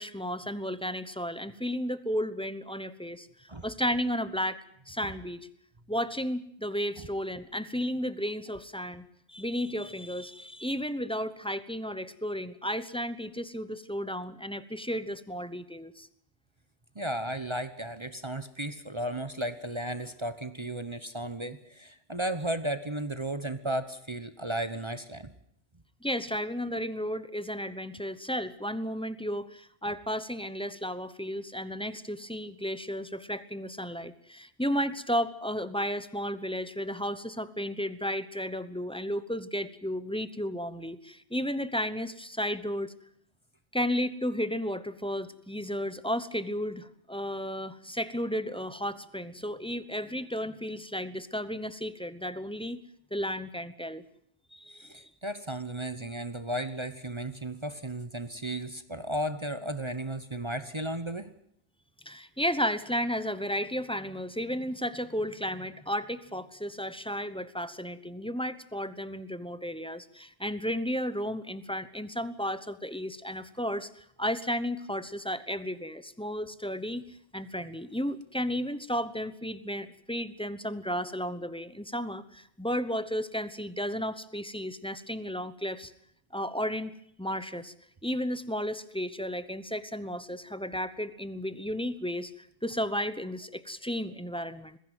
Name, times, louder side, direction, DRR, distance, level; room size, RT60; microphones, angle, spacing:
voice 1, 0.0-5.5 5.9-16.1 26.0-42.9 43.7-52.8 53.1-54.0 54.5-55.1 62.0-77.0 77.3-85.9 86.3-87.7 88.0-94.8, equal, 5° left, 13 dB, 0.9 m, -33 dB
voice 2, 16.9-25.3 54.9-61.3, right 1 dB, 25° right, 11 dB, 1.0 m, -34 dB
21.5 x 15.5 x 9.1 m, 0.71 s
omnidirectional pair, 1.2 m